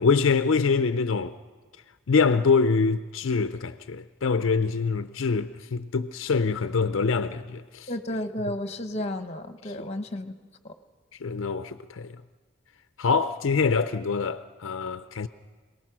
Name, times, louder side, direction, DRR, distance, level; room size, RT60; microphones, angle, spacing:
voice 1, 0.0-1.3 2.1-7.9 9.6-9.7 11.2-12.1 13.0-15.3, left 5 dB, 70° left, 0.5 m, -25 dB
voice 2, 7.9-10.3 10.6-10.7, left 1 dB, 30° left, 1.1 m, -32 dB
27.0 x 19.0 x 6.1 m
head